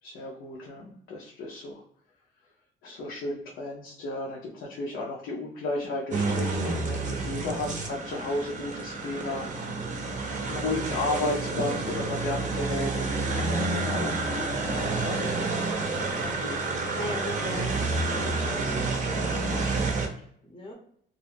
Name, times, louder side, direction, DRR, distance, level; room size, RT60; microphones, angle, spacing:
voice 1, 0.0-1.8 2.8-17.0, left 2 dB, 80° left, -3 dB, 0.6 m, -34 dB
sound 1, 6.1-20.1, right 3 dB, 40° right, 0.5 m, -29 dB
voice 2, 16.4-20.7, left 1 dB, 25° left, 0 dB, 0.6 m, -40 dB
2.3 x 2.0 x 3.2 m, 0.64 s
cardioid pair, 90°, 20 cm